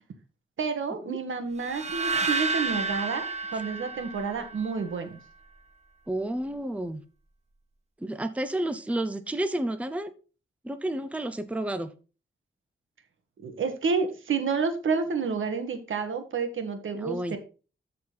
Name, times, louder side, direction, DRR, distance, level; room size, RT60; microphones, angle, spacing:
voice 1, 0.6-3.3 3.5-5.2 13.4-17.4, right 5 dB, 75° right, 7 dB, 1.6 m, -29 dB
sound 1, 1.7-4.8, right 3 dB, 35° right, 1.3 m, -30 dB
voice 2, 6.1-7.0 8.0-10.1 10.6-11.9 16.9-17.4, right 1 dB, 5° right, 10 dB, 0.7 m, -31 dB
13.0 x 4.4 x 4.1 m, 0.34 s
wide cardioid pair, 115°, 20 cm